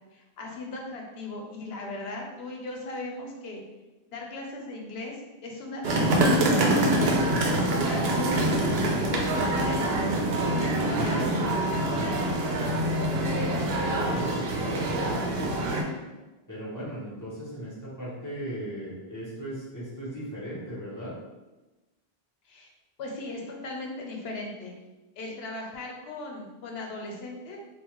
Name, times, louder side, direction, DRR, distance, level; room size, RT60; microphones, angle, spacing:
voice 1, 0.1-3.6 4.1-5.2 5.4-7.2 7.7-8.6 9.1-12.5 22.4-22.7 23.0-24.7 25.2-27.6, left 2 dB, 80° left, 0 dB, 0.9 m, -38 dB
sound 1, 5.8-15.8, right 1 dB, 80° right, 0.8 m, -25 dB
voice 2, 13.6-15.6 16.5-21.1, equal, 20° left, -9 dB, 1.2 m, -37 dB
3.5 x 2.4 x 3.0 m, 1.1 s
omnidirectional pair, 1.0 m